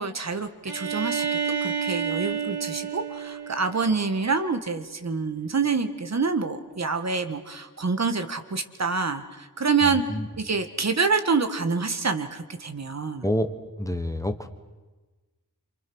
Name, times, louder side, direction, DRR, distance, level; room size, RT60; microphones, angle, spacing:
voice 1, 0.0-10.0 10.4-13.3, right 4 dB, 45° right, 8 dB, 1.7 m, -27 dB
Bowed string instrument, 0.7-4.4, right 7 dB, 85° right, 2.8 m, -30 dB
voice 2, 9.8-10.3 13.2-13.5 13.8-14.5, left 1 dB, 10° left, 8 dB, 1.2 m, -27 dB
27.5 x 27.0 x 6.3 m, 1.2 s
wide cardioid pair, 140°, 37 cm